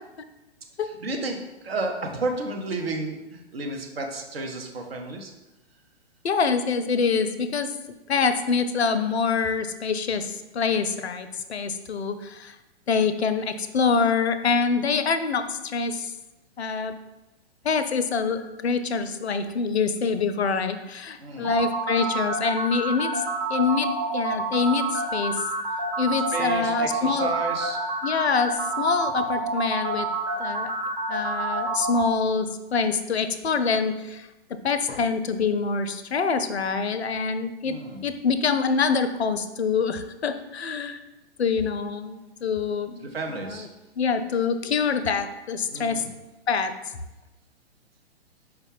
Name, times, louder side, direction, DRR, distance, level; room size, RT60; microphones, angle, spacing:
voice 1, 0.8-5.3 21.2-21.6 26.3-27.8 37.6-38.1 43.0-43.7 45.7-46.1, right 3 dB, 60° right, 2 dB, 0.8 m, -32 dB
voice 2, 6.2-7.7 8.1-12.6 12.9-16.1 16.6-16.9 17.6-23.2 23.5-25.3 26.0-27.3 28.0-30.1 30.4-30.7 31.1-37.8 38.0-41.0 41.4-43.1 44.0-46.0 46.5-46.7, left 5 dB, 70° left, 10 dB, 0.5 m, -25 dB
sound 1, 21.4-32.0, right 3 dB, 15° right, 0.8 m, -28 dB
4.7 x 2.2 x 4.7 m, 1.0 s
figure-of-eight pair, 115°, 33 cm